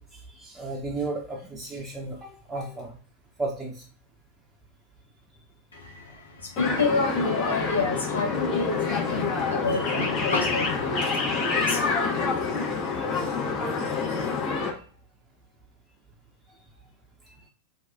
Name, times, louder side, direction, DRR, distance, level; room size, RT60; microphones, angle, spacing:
voice 1, 0.0-2.9 3.4-3.8 17.3-17.5, right 2 dB, 10° right, -2 dB, 0.8 m, -34 dB
voice 2, 5.7-13.3, left 3 dB, 70° left, 1 dB, 1.1 m, -30 dB
sound 1, 6.6-14.7, left 4 dB, 35° left, 1.4 m, -27 dB
4.5 x 2.6 x 2.6 m, 0.42 s
figure-of-eight pair, 90°, 0 cm